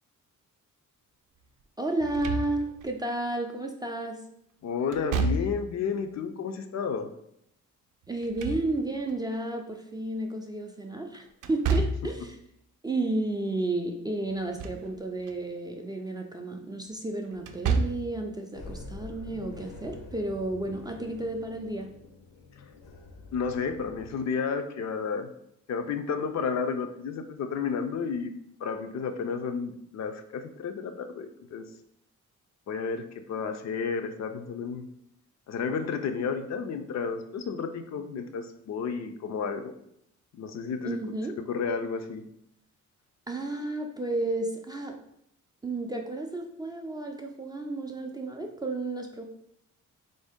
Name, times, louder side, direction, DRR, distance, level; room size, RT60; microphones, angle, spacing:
voice 1, 1.8-4.2 8.1-12.4 12.8-21.9 40.8-41.3 43.3-45.0 45.6-49.2, right 2 dB, 15° right, 2 dB, 0.3 m, -32 dB
Slam / Thump thud, 2.0-2.9 4.9-5.8 8.1-9.1 11.4-12.2 14.3-14.9 15.3-15.4 17.4-18.2, right 4 dB, 75° right, 0.5 m, -29 dB
voice 2, 4.6-7.1 23.3-25.3 25.7-28.3 28.6-31.7 32.7-33.0 33.3-34.9 35.5-39.7 40.4-41.0 41.5-42.2, left 5 dB, 60° left, 7 dB, 0.5 m, -31 dB
sound 1, 18.5-24.1, left 3 dB, 80° left, 0.8 m, -45 dB
3.5 x 2.7 x 3.5 m, 0.75 s
cardioid pair, 115°, 31 cm